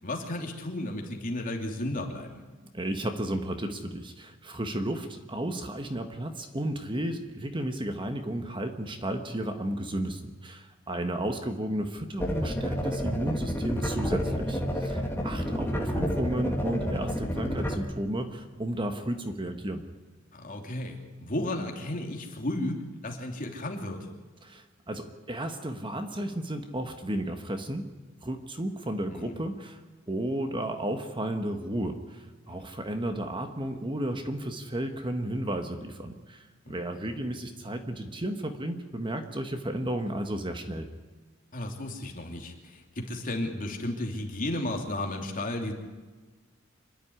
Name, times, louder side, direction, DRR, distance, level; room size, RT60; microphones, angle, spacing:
voice 1, 0.0-2.4 14.1-14.4 20.3-22.8 23.0-24.1 29.1-29.4 32.4-32.6 36.6-36.8 41.5-45.7, left 1 dB, 45° left, 1 dB, 3.1 m, -34 dB
voice 2, 2.7-19.8 24.4-27.8 28.2-29.8 30.1-40.9, right 1 dB, 25° right, 6 dB, 1.4 m, -33 dB
sound 1, 12.2-17.7, equal, 10° left, 2.4 m, -29 dB
26.0 x 11.0 x 9.7 m, 1.3 s
head